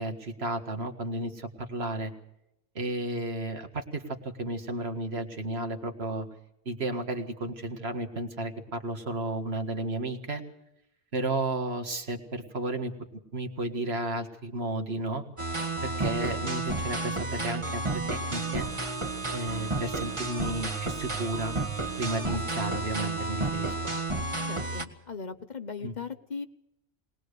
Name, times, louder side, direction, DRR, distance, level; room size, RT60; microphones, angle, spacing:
voice 1, 0.0-2.1 2.8-6.3 6.7-10.4 11.1-12.9 13.3-15.2 15.8-18.7 19.3-21.6 22.0-23.9 25.8-25.9, right 2 dB, 65° right, 5 dB, 2.1 m, -33 dB
sound 1, 15.4-24.9, right 2 dB, 25° right, 1.6 m, -31 dB
voice 2, 24.5-26.5, left 5 dB, 45° left, 10 dB, 1.0 m, -38 dB
21.5 x 19.5 x 6.8 m, 0.81 s
omnidirectional pair, 1.1 m